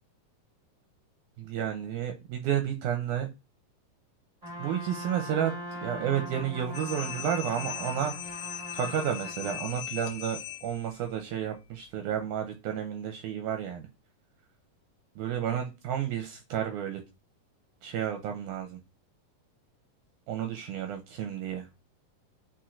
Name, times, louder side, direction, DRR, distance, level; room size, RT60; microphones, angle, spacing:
voice 1, 1.4-3.3 4.6-5.5 5.8-8.1 8.7-13.9 15.2-17.0 17.8-18.8 20.3-21.7, right 9 dB, 80° right, 5 dB, 2.0 m, -31 dB
Trumpet, 4.4-9.7, equal, 20° right, 1.0 m, -41 dB
sound 1, 6.7-11.0, left 12 dB, 75° left, 1.8 m, -39 dB
4.4 x 4.4 x 2.5 m, 0.26 s
omnidirectional pair, 3.9 m